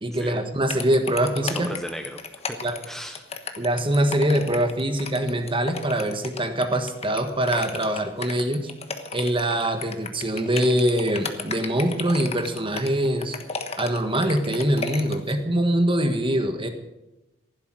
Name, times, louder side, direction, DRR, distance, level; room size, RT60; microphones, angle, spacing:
voice 1, 0.0-1.7 2.6-2.8 3.6-8.7 9.1-13.4 13.8-16.7, right 1 dB, 30° right, 7 dB, 1.5 m, -23 dB
sound 1, 0.7-15.3, left 5 dB, 35° left, 1.3 m, -34 dB
voice 2, 1.4-2.2 2.5-2.6 2.9-3.2, equal, ahead, 6 dB, 0.8 m, -35 dB
15.5 x 11.5 x 6.3 m, 1.0 s
head